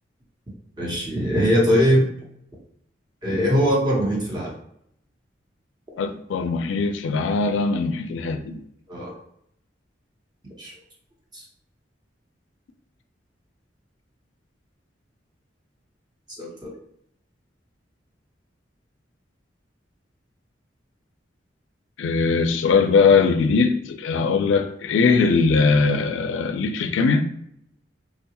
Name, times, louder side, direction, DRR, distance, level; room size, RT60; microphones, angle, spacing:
voice 1, 0.8-2.1 3.2-4.5 8.9-9.2 10.6-10.7 11.3-11.4 16.4-16.7, equal, 25° right, -4 dB, 0.9 m, -21 dB
voice 2, 6.0-8.6 22.0-27.2, left 4 dB, 90° left, 8 dB, 0.3 m, -20 dB
3.7 x 2.2 x 2.9 m, 0.72 s
head